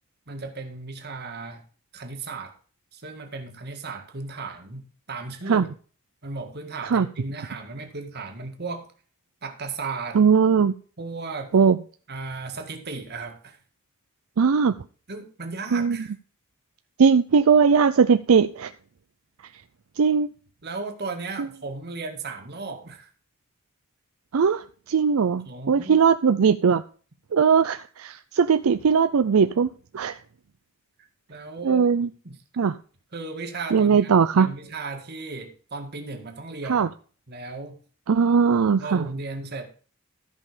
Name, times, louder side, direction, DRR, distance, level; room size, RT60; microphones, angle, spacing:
voice 1, 0.3-1.6 1.9-2.5 2.9-5.7 6.2-8.9 9.4-10.2 11.0-11.5 12.1-13.6 15.1-16.1 20.6-23.1 25.4-26.0 31.3-31.9 32.2-32.4 33.1-36.9 37.3-37.8 38.8-39.7, right 3 dB, 50° right, 5 dB, 1.9 m, -35 dB
voice 2, 10.1-10.7 11.5-11.8 14.4-14.7 15.7-16.0 17.0-18.7 20.0-20.3 21.4-21.5 24.3-26.8 27.3-29.7 29.9-30.2 31.6-32.1 32.6-32.7 33.7-34.5 36.7-36.9 38.1-39.1, right 6 dB, 75° right, 11 dB, 0.5 m, -19 dB
14.0 x 5.5 x 5.0 m, 0.41 s
head